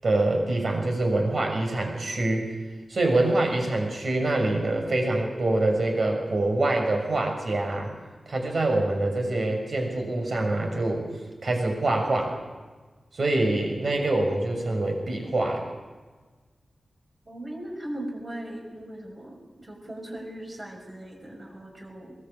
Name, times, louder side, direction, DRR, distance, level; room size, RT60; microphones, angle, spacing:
voice 1, 0.0-2.5 2.9-7.9 8.3-11.0 11.4-12.3 13.1-15.6, right 2 dB, 55° right, 3 dB, 6.4 m, -25 dB
voice 2, 17.2-22.2, right 1 dB, 35° right, 1 dB, 6.1 m, -38 dB
23.0 x 20.0 x 8.6 m, 1.3 s
wide cardioid pair, 125°, 0 cm